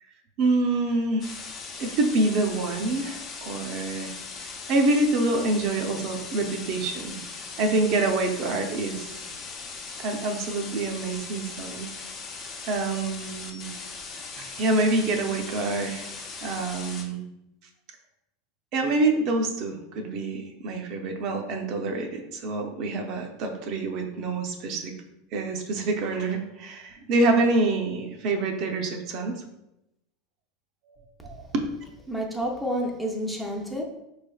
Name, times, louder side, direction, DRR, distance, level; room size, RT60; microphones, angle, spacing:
voice 1, 0.4-1.4 1.8-4.1 4.7-7.2 7.6-9.2 10.0-12.1 12.6-13.7 14.4-16.1 16.4-17.2 18.7-24.9 25.3-29.4 30.9-31.0 31.2-31.7, right 2 dB, 55° right, 3 dB, 0.6 m, -26 dB
sound 1, 1.2-17.0, left 4 dB, 40° left, 0.7 m, -39 dB
voice 2, 32.1-33.8, equal, ahead, -1 dB, 0.6 m, -29 dB
4.6 x 3.2 x 2.3 m, 0.87 s
supercardioid pair, 120°, 0 cm